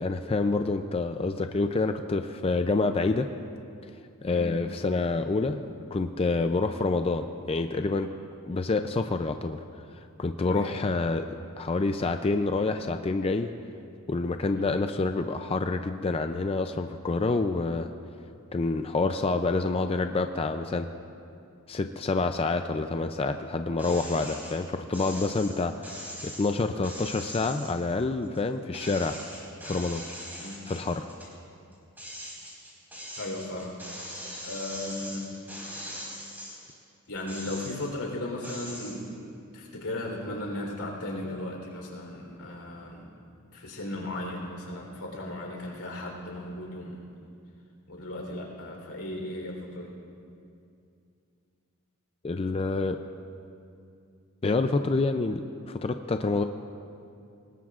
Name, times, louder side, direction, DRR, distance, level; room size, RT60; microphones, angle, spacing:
voice 1, 0.0-3.3 4.2-8.1 8.5-9.6 10.2-11.3 11.6-13.5 14.1-17.9 18.5-20.9 21.7-29.2 29.6-30.0 30.7-31.1 52.2-53.0 54.4-56.4, left 3 dB, 25° left, 7 dB, 0.4 m, -27 dB
sound 1, 23.8-24.5 24.9-28.4 28.7-31.3 31.7-36.7 37.2-38.0 38.4-39.0, equal, 10° right, 4.6 m, -41 dB
voice 2, 33.2-33.7 34.4-35.3 37.1-39.2 39.5-43.1 43.5-47.0 47.9-49.9, left 1 dB, 90° left, 0 dB, 3.7 m, -36 dB
25.0 x 19.5 x 2.5 m, 2.5 s
head